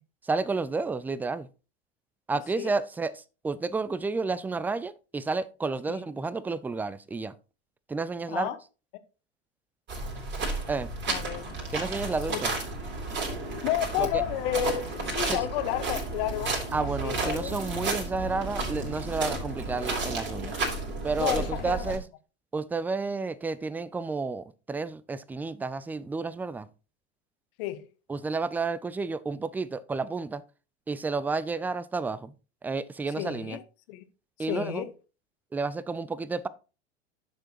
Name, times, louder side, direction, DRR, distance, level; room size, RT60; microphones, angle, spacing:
voice 1, 0.2-1.5 2.3-7.3 7.9-8.5 10.7-10.9 11.7-12.5 14.0-14.1 15.1-15.4 16.7-20.6 21.0-22.1 22.5-26.7 28.1-30.4 30.9-32.3 32.6-33.6 34.4-34.8 35.5-36.5, right 4 dB, 5° right, 0.4 m, -31 dB
voice 2, 2.3-2.8 5.9-6.0 8.3-8.6 11.1-11.7 12.3-12.4 13.6-17.5 21.2-21.9 27.6-27.9 33.2-33.6 33.9-34.0 34.5-34.9, left 12 dB, 55° left, 1.3 m, -31 dB
sound 1, 9.9-22.0, right 3 dB, 30° right, 3.6 m, -32 dB
11.0 x 6.7 x 3.0 m
figure-of-eight pair, 85°, 34 cm